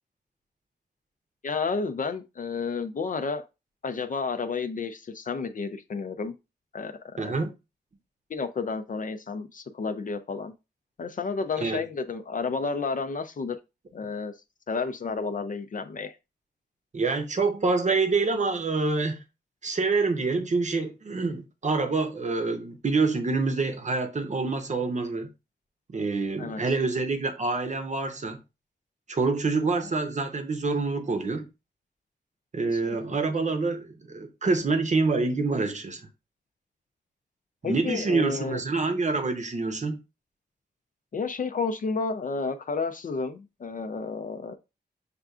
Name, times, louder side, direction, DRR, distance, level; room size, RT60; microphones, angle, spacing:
voice 1, 1.4-3.4 3.8-6.3 6.7-7.4 8.3-10.5 11.0-13.6 13.9-14.3 14.7-16.2 26.4-26.6 32.7-33.0 37.6-38.6 41.1-44.6, left 4 dB, 50° left, 0.4 m, -31 dB
voice 2, 7.2-7.5 11.6-11.8 16.9-19.2 19.6-25.3 25.9-28.4 29.1-31.5 32.5-36.0 37.6-40.0, right 3 dB, 45° right, 0.7 m, -26 dB
6.5 x 2.4 x 2.3 m
cardioid pair, 65°, 17 cm